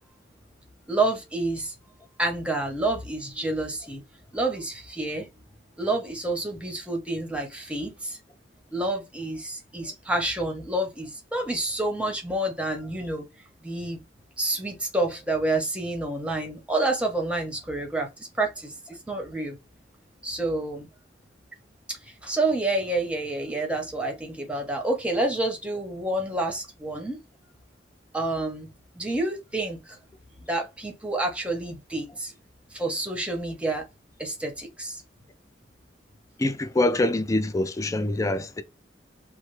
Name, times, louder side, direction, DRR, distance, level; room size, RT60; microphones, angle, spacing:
voice 1, 0.9-1.7 2.2-4.0 4.3-5.3 5.8-8.2 8.7-13.3 13.6-14.0 14.4-18.1 18.4-19.6 20.2-20.9 21.9-27.2 28.1-28.7 28.9-30.0 30.5-32.3 32.7-33.9 34.2-35.0, right 2 dB, 5° right, 0.8 m, -28 dB
voice 2, 36.4-38.6, left 2 dB, 20° left, 0.3 m, -25 dB
3.1 x 2.1 x 3.1 m
head